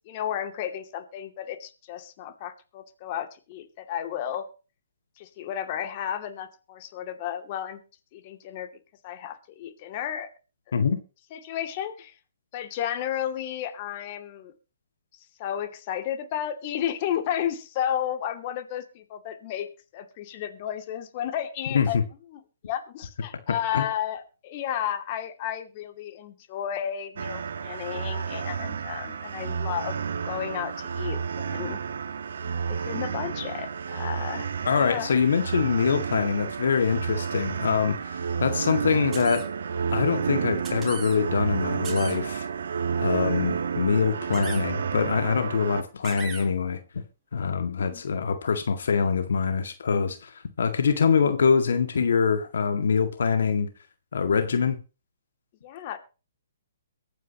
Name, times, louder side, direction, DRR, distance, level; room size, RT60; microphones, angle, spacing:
voice 1, 0.1-4.5 5.2-7.8 8.1-8.7 9.0-10.3 11.3-12.1 12.5-14.5 15.4-19.7 19.9-22.0 22.3-30.0 30.2-31.8 32.7-34.5 34.8-35.1 47.8-48.0 55.6-56.0, left 10 dB, 40° left, 2.5 m, -33 dB
voice 2, 21.7-22.0 23.7-23.9 34.6-39.5 39.9-42.5 43.0-46.8 47.3-53.7 54.1-54.8, left 6 dB, 70° left, 2.0 m, -24 dB
sound 1, 27.2-45.8, right 6 dB, 70° right, 1.5 m, -30 dB
sound 2, 39.1-39.5 40.6-41.2 41.8-42.2 44.3-44.6 46.0-46.5, right 6 dB, 15° right, 4.4 m, -38 dB
23.0 x 9.2 x 3.0 m
hypercardioid pair, 140°, 0 cm